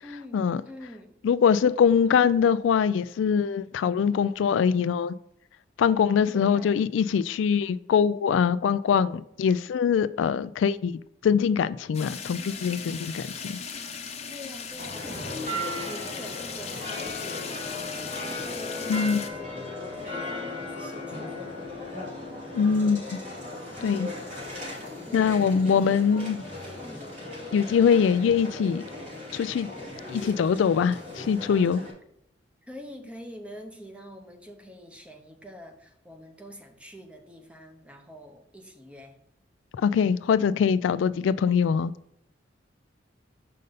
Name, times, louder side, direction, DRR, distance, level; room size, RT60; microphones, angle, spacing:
voice 1, 0.0-1.2 6.3-6.9 14.3-17.8 18.2-21.7 25.0-25.3 25.6-26.1 26.8-27.1 32.7-39.2, equal, 5° right, 0.9 m, -45 dB
voice 2, 1.2-5.1 5.8-10.9 11.2-13.6 18.9-19.2 22.5-23.2 23.8-24.1 25.1-26.4 27.5-28.8 29.3-29.7 30.1-31.8 39.7-41.9, left 6 dB, 85° left, 0.3 m, -23 dB
sound 1, 11.9-19.3, left 6 dB, 35° left, 0.8 m, -38 dB
sound 2, 14.8-31.9, left 2 dB, 45° right, 2.7 m, -37 dB
6.5 x 5.3 x 4.0 m
head